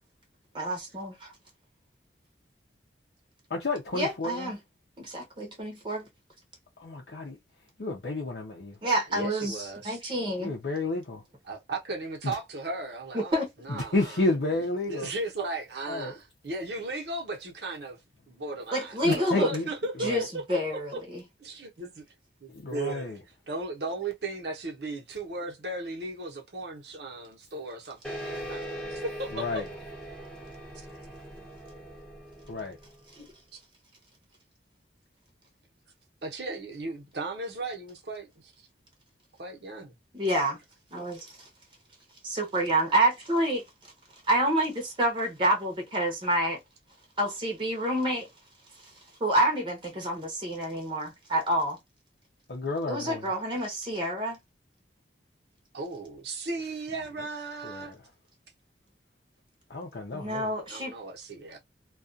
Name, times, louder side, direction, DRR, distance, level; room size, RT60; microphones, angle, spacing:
voice 1, 0.5-1.3 3.9-4.6 5.0-6.1 8.8-10.5 13.1-13.5 18.7-19.5 20.0-21.2 33.1-33.2 40.1-40.6 40.9-41.4 42.2-43.6 44.3-46.6 47.2-48.3 49.2-51.8 52.9-54.4 60.1-60.9, right 1 dB, 30° right, 0.8 m, -28 dB
voice 2, 3.5-4.5 6.8-7.4 7.8-8.8 10.4-11.2 12.2-12.4 13.7-15.1 15.9-16.1 19.0-19.7 20.0-20.3 22.5-23.2 29.3-29.7 32.5-32.8 52.5-53.3 57.6-58.0 59.7-60.5, left 2 dB, 65° left, 0.6 m, -31 dB
voice 3, 9.1-10.0 11.5-13.4 13.6-14.1 14.9-18.0 18.3-20.4 20.7-21.0 21.4-22.0 22.4-23.2 23.5-29.6 36.2-38.3 39.4-39.9 55.7-57.9 60.7-61.6, right 2 dB, 65° right, 0.9 m, -36 dB
sound 1, 28.0-33.1, right 1 dB, 5° left, 0.7 m, -40 dB
2.3 x 2.3 x 2.5 m
head